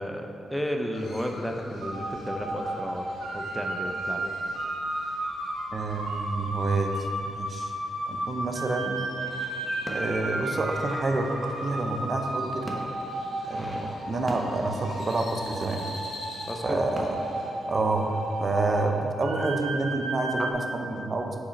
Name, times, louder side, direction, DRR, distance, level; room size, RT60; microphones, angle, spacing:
voice 1, 0.0-3.1 3.3-4.3 16.5-16.8 18.6-18.7, equal, ahead, 2 dB, 0.7 m, -33 dB
Crow, 0.9-17.5, left 2 dB, 65° left, 1.1 m, -48 dB
sound 1, 1.8-20.5, right 2 dB, 90° right, 0.8 m, -34 dB
voice 2, 5.7-7.7 8.1-9.0 9.9-12.7 13.5-15.8 16.6-17.2 17.7-18.1 18.4-21.4, right 2 dB, 45° right, 4 dB, 0.6 m, -28 dB
sound 2, 9.2-18.6 19.0-19.2, right 1 dB, 15° right, 1.0 m, -43 dB
4.9 x 4.2 x 5.2 m, 2.6 s
supercardioid pair, 55°, 0 cm